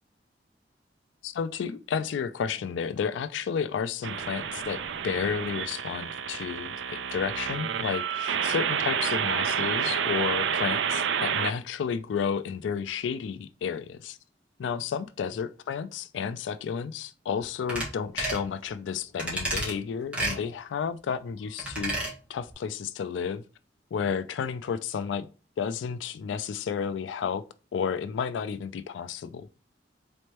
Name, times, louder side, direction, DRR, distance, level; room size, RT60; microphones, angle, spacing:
voice 1, 1.2-14.2 14.6-21.9 22.3-23.4 23.9-25.3 25.6-27.4 27.7-29.5, left 6 dB, 85° left, 0.3 m, -32 dB
sound 1, 4.0-11.5, right 7 dB, 85° right, 0.4 m, -29 dB
sound 2, 17.7-17.9 18.2-18.4 19.2-19.7 20.1-20.4 21.6-22.1 22.5-22.6, right 1 dB, 5° right, 1.6 m, -30 dB
4.2 x 3.2 x 2.9 m
head